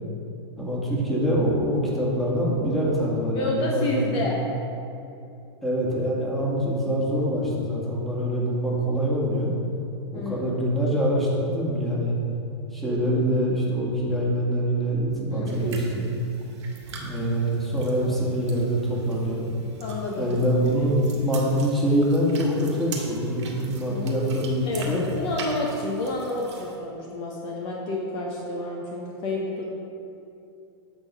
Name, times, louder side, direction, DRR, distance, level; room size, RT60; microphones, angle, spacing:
voice 1, 0.6-4.3 5.6-9.5 10.1-12.1 12.7-16.1 17.0-19.6 20.2-25.0, equal, ahead, -6 dB, 1.8 m, -24 dB
voice 2, 3.3-4.4 10.1-10.5 15.3-15.8 18.0-18.5 19.8-20.4 20.8-20.9 23.9-24.1 24.7-29.7, left 2 dB, 40° left, -2 dB, 1.1 m, -30 dB
sound 1, 15.4-26.7, right 3 dB, 80° right, 1.8 m, -43 dB
8.7 x 3.9 x 6.1 m, 2.7 s
hypercardioid pair, 120°, 15 cm